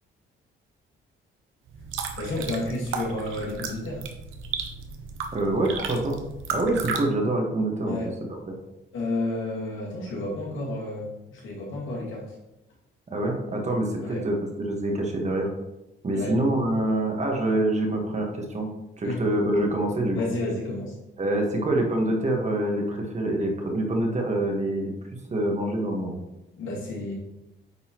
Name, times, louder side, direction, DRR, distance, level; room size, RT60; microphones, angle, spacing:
sound 1, 1.7-7.0, right 5 dB, 85° right, 0.9 m, -34 dB
voice 1, 2.2-4.0 7.9-8.1 8.9-12.3 14.0-14.3 16.1-16.3 19.0-19.2 20.1-21.0 26.6-27.1, left 2 dB, 80° left, -4 dB, 2.2 m, -31 dB
voice 2, 5.3-6.2 6.5-8.0 8.3-8.5 13.1-15.5 16.0-20.2 21.2-24.9 25.3-26.2, right 1 dB, 35° right, 1 dB, 1.4 m, -26 dB
9.2 x 4.0 x 3.0 m, 0.95 s
cardioid pair, 90°, 20 cm